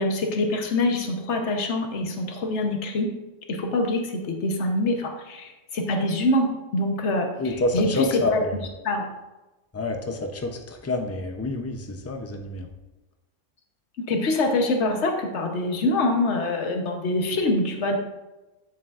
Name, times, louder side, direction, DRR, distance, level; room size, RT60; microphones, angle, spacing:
voice 1, 0.0-3.1 3.5-8.4 8.8-9.1 14.0-18.0, left 2 dB, 65° left, 3 dB, 1.3 m, -25 dB
voice 2, 7.4-8.6 9.7-12.7, left 2 dB, 20° left, 4 dB, 0.4 m, -28 dB
8.6 x 7.4 x 2.5 m, 1.1 s
omnidirectional pair, 1.3 m